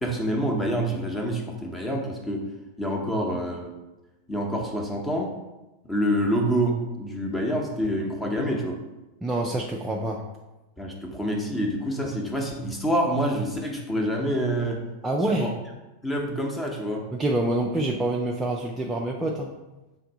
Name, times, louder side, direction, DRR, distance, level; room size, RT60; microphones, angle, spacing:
voice 1, 0.0-2.4 2.8-3.7 4.3-5.3 5.8-8.8 10.8-14.8 15.4-15.5 16.0-17.0, equal, 10° left, 0 dB, 0.8 m, -27 dB
voice 2, 9.2-10.2 15.0-15.5 17.1-19.5, right 1 dB, 10° right, -2 dB, 0.3 m, -26 dB
3.4 x 2.5 x 4.0 m, 1.0 s
figure-of-eight pair, 90°, 0 cm